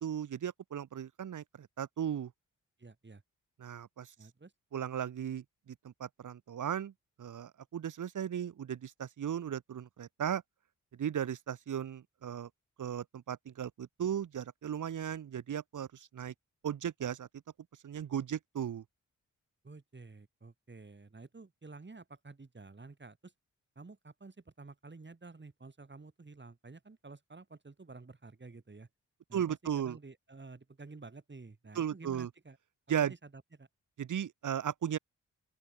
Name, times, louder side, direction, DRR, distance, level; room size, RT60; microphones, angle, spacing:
voice 1, 0.0-2.3 3.6-4.1 4.7-6.9 7.2-10.4 10.9-12.5 12.8-16.3 16.6-17.3 17.8-18.8 29.3-30.0 31.8-32.3 32.9-33.1 34.0-35.0, right 9 dB, 70° right, 1.8 m, -36 dB
voice 2, 2.8-3.2 4.2-4.5 19.6-23.3 23.8-28.9 29.3-32.6 33.0-33.7, right 3 dB, 35° right, 7.3 m, -51 dB
open air
supercardioid pair, 50°, 32 cm